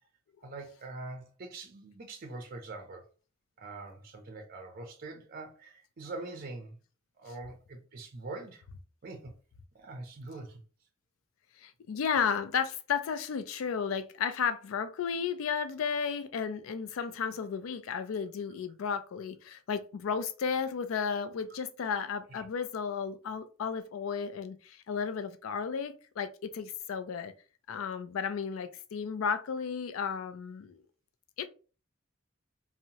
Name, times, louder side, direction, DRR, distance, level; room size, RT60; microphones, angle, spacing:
voice 1, 0.4-3.0 3.6-6.8 7.2-8.6 9.0-9.3 9.7-10.6 22.3-22.4, right 3 dB, 45° right, 0.5 m, -43 dB
voice 2, 11.6-27.3 27.7-30.8 31.4-31.5, left 6 dB, 85° left, 0.4 m, -33 dB
2.7 x 2.0 x 2.8 m
head